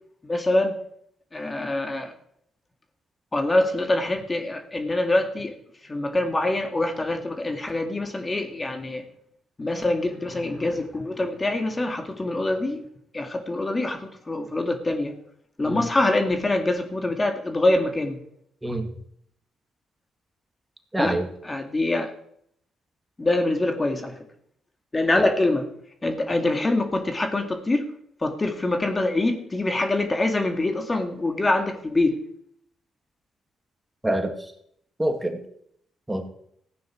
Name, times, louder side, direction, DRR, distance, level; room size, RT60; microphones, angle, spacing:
voice 1, 0.2-0.8 1.3-2.1 3.3-5.5 5.8-9.0 9.6-12.8 13.1-15.1 15.6-18.2 21.0-21.2 21.4-22.1 23.2-24.2 24.9-25.7 26.0-27.9 28.2-32.2, left 2 dB, 30° left, 5 dB, 2.2 m, -24 dB
voice 2, 20.9-21.3 25.2-25.3 34.0-34.5 35.0-35.4 36.1-36.3, right 1 dB, 15° right, 5 dB, 2.2 m, -26 dB
15.0 x 9.3 x 4.7 m, 0.69 s
supercardioid pair, 50°, 0 cm